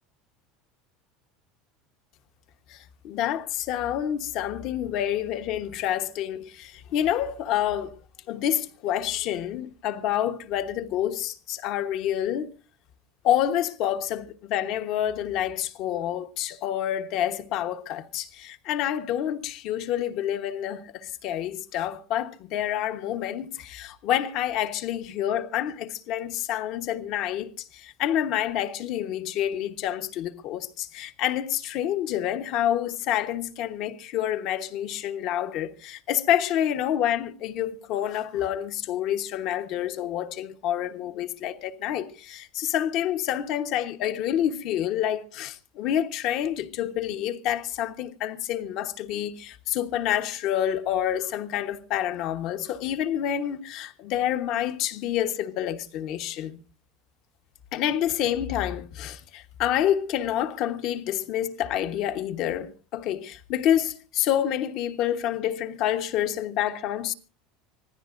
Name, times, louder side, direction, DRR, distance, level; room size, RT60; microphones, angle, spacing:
voice 1, 3.0-7.9 8.3-12.5 13.2-56.6 57.7-67.1, left 11 dB, 50° left, 1.2 m, -28 dB
25.0 x 16.5 x 2.6 m
cardioid pair, 155°, 0 cm